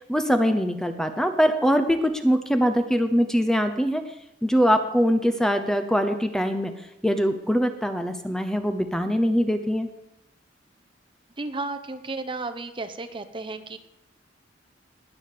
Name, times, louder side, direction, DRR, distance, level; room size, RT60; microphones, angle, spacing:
voice 1, 0.1-4.0 4.4-6.7 7.0-9.9, equal, 5° left, 8 dB, 0.8 m, -22 dB
voice 2, 11.4-13.8, right 3 dB, 25° right, 8 dB, 0.9 m, -33 dB
20.0 x 7.2 x 6.8 m, 0.84 s
head